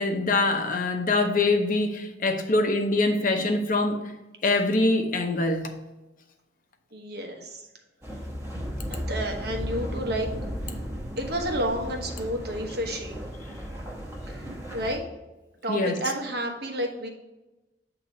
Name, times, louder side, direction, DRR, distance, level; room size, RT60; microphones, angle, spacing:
voice 1, 0.0-4.0 4.4-5.7 15.7-16.0, left 2 dB, 50° left, 5 dB, 0.8 m, -24 dB
voice 2, 6.9-7.7 9.1-10.3 11.2-13.3 14.3-14.5 14.7-15.0 15.6-17.1, equal, 65° right, 2 dB, 1.1 m, -30 dB
sound 1, 8.0-15.0, equal, 15° right, 1.2 m, -35 dB
7.9 x 3.0 x 5.2 m, 1.0 s
head